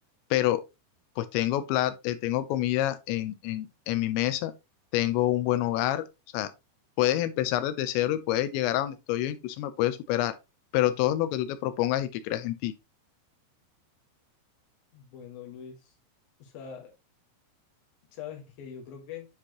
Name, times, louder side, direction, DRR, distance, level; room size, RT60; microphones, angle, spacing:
voice 1, 0.3-0.6 1.2-4.5 4.9-6.1 6.3-6.5 7.0-10.4 10.7-12.7, left 14 dB, 80° left, 2.9 m, -27 dB
voice 2, 14.9-15.9 16.4-16.9 18.1-19.3, left 8 dB, 60° left, 3.0 m, -43 dB
9.8 x 4.3 x 3.0 m
omnidirectional pair, 5.4 m